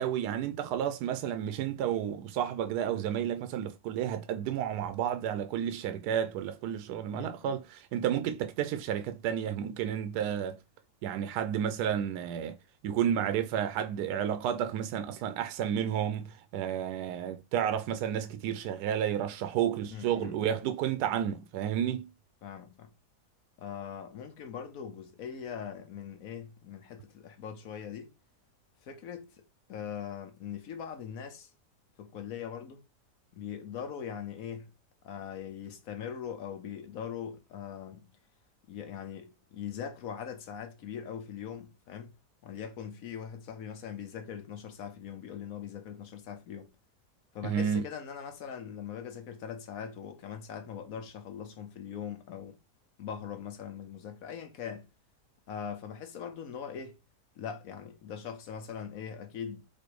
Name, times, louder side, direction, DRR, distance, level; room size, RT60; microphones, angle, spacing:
voice 1, 0.0-10.6 11.0-12.6 12.8-22.1 47.4-47.8, right 9 dB, 80° right, 1.1 m, -31 dB
voice 2, 7.1-7.6 19.9-20.4 22.4-22.9 23.6-28.1 28.8-31.5 32.0-32.8 33.3-34.7 35.0-38.1 38.7-42.2 42.4-46.7 47.3-52.6 53.0-54.9 55.5-57.0 57.4-59.8, left 8 dB, 65° left, 1.1 m, -41 dB
4.3 x 2.6 x 4.6 m
omnidirectional pair, 1.7 m